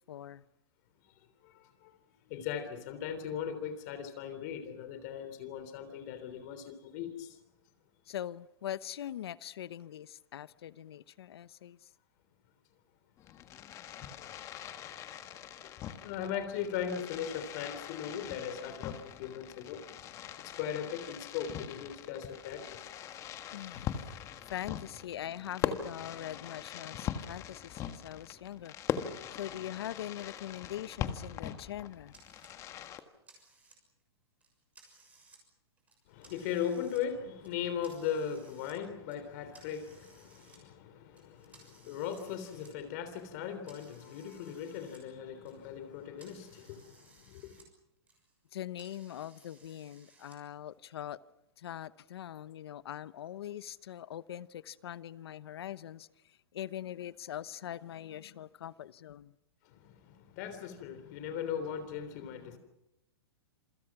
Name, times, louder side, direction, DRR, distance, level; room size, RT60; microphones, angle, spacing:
voice 1, 0.1-0.4 8.1-11.9 23.5-24.0 24.4-28.7 29.3-32.1 48.5-51.2 51.6-59.3, left 11 dB, 75° left, 1.0 m, -42 dB
voice 2, 1.4-1.9 2.3-7.4 15.6-15.7 16.0-19.8 20.4-22.8 36.1-47.6 59.7-62.6, left 8 dB, 40° left, 3.4 m, -38 dB
Fireworks, 13.2-33.0, left 9 dB, 25° left, 1.6 m, -41 dB
sound 1, 32.1-32.5 33.0-34.0 34.4-35.4 35.8-37.0 37.4-38.8 39.1-40.6 41.1-45.0 45.3-47.7 48.0-50.4, right 3 dB, 10° right, 6.5 m, -61 dB
27.5 x 25.5 x 6.0 m
hypercardioid pair, 155°, 13 cm